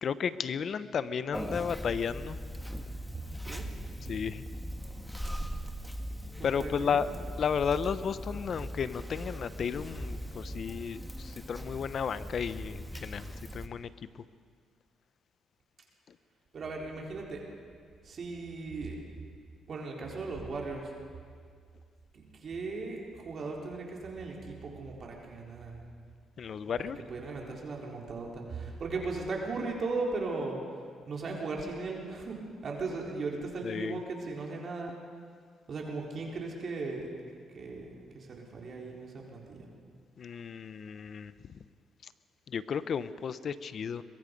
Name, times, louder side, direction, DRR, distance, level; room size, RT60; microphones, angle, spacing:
voice 1, 0.0-2.4 4.1-4.4 6.4-7.1 7.4-14.2 16.1-16.2 26.4-27.0 33.6-34.0 40.2-41.6 42.5-44.0, left 7 dB, 55° left, 14 dB, 0.8 m, -33 dB
Conversation, 1.3-13.7, equal, ahead, 1.6 m, -40 dB
voice 2, 6.4-7.1 16.5-17.4 18.0-19.0 19.7-20.9 22.1-25.8 26.7-26.8 27.1-30.6 31.1-34.9 35.7-37.1 37.5-37.9 38.1-39.7, right 3 dB, 50° right, -1 dB, 4.0 m, -37 dB
22.5 x 22.5 x 5.3 m, 2.1 s
cardioid pair, 90°, 0 cm